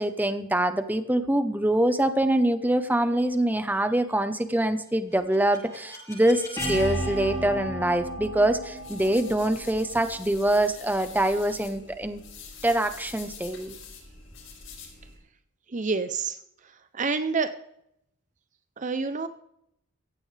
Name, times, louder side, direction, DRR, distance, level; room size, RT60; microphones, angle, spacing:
voice 1, 0.0-12.2 12.6-13.8, right 1 dB, 10° right, 10 dB, 0.8 m, -24 dB
sound 1, 5.1-11.0, equal, 15° left, 7.3 m, -34 dB
sound 2, 8.8-15.2, left 5 dB, 70° left, 5.6 m, -45 dB
voice 2, 15.7-17.5 18.8-19.3, right 4 dB, 35° right, 11 dB, 0.6 m, -29 dB
16.0 x 15.5 x 3.4 m, 0.78 s
head